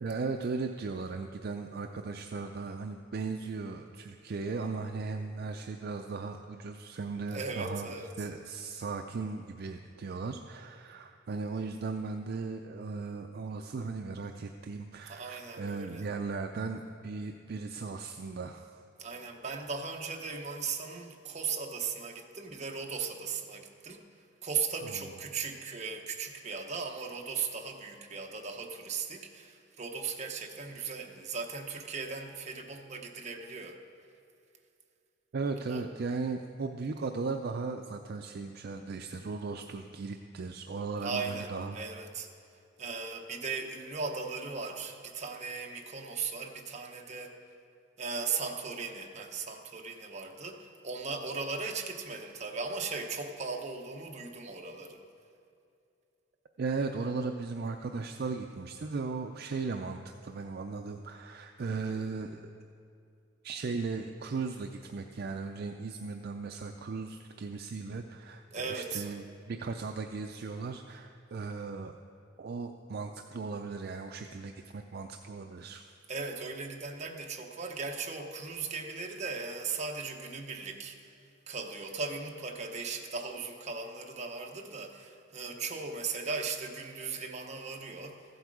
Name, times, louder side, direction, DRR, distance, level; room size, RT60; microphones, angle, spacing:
voice 1, 0.0-18.8 24.8-25.1 35.3-41.8 56.6-62.5 63.4-72.0 72.4-75.9, right 4 dB, 55° right, 5 dB, 0.4 m, -37 dB
voice 2, 7.3-8.1 15.1-16.0 19.0-24.0 24.4-33.8 35.7-35.8 41.0-42.3 42.8-47.4 48.0-55.0 68.5-69.1 76.1-81.1 81.5-88.2, right 5 dB, 35° right, 2 dB, 0.9 m, -37 dB
14.5 x 8.0 x 4.8 m, 2.5 s
head